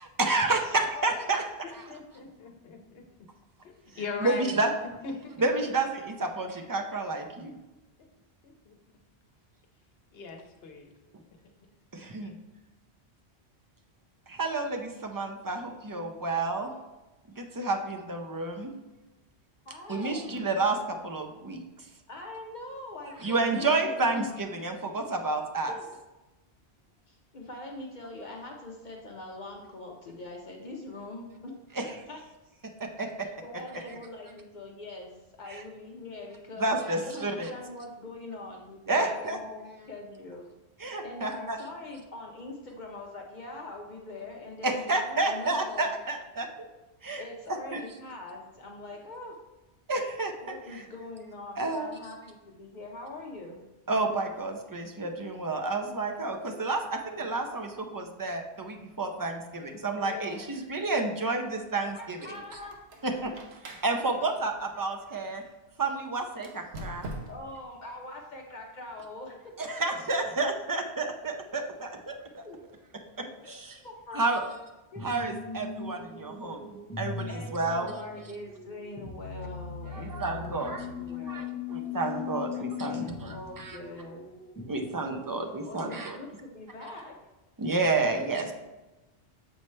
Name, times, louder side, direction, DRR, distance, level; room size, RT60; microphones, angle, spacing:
voice 1, 0.2-1.4 3.9-4.7 5.4-7.5 11.9-12.3 14.3-16.7 17.4-18.7 19.9-21.6 23.2-25.7 31.8-32.0 32.8-33.3 35.5-35.6 36.6-37.5 38.9-39.4 40.8-41.6 44.6-46.5 47.0-47.2 47.7-47.8 49.9-50.3 50.7-50.8 51.6-51.9 53.9-62.2 63.0-63.3 63.6-65.4 65.8-67.1 69.6-72.4 73.2-73.8 74.1-74.4 75.0-77.9 79.9-80.9 81.3-81.4 81.7-83.8 84.7-86.2 87.6-88.5, right 3 dB, 35° right, 3 dB, 0.3 m, -30 dB
voice 2, 1.9-3.0 3.6-4.5 5.0-5.7 8.4-8.8 10.1-10.9, left 4 dB, 65° left, 3 dB, 1.0 m, -39 dB
voice 3, 19.7-20.4 22.1-24.3 25.7-26.0 27.1-31.5 32.1-32.2 33.4-40.5 41.0-45.9 47.2-49.4 50.4-53.6 56.2-56.6 60.0-60.5 61.9-62.8 67.3-69.4 69.6-69.8 72.4-72.6 73.2-74.5 74.9-75.1 77.3-81.6 82.5-84.3 85.6-87.2 87.9-88.5, left 2 dB, 50° left, 1 dB, 0.7 m, -43 dB
Squeak, 62.4-65.5 66.3-67.6, right 1 dB, 75° right, 1.0 m, -44 dB
sound 1, 75.0-85.7, left 5 dB, 15° left, 1.1 m, -40 dB
7.0 x 4.3 x 3.2 m, 1.1 s
omnidirectional pair, 1.1 m